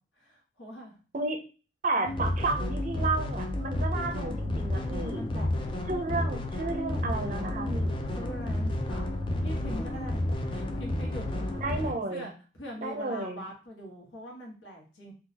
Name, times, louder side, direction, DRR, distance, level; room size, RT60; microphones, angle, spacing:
voice 1, 0.2-1.0 2.0-2.3 5.1-5.9 8.2-10.2 10.5-15.1, equal, 80° left, -1 dB, 1.2 m, -43 dB
voice 2, 1.8-5.2 5.9-8.0 11.6-12.3 12.8-13.4, right 3 dB, 40° right, 3 dB, 0.5 m, -32 dB
sound 1, 2.1-11.9, left 1 dB, 25° left, 0.4 m, -31 dB
3.8 x 2.3 x 2.8 m, 0.36 s
head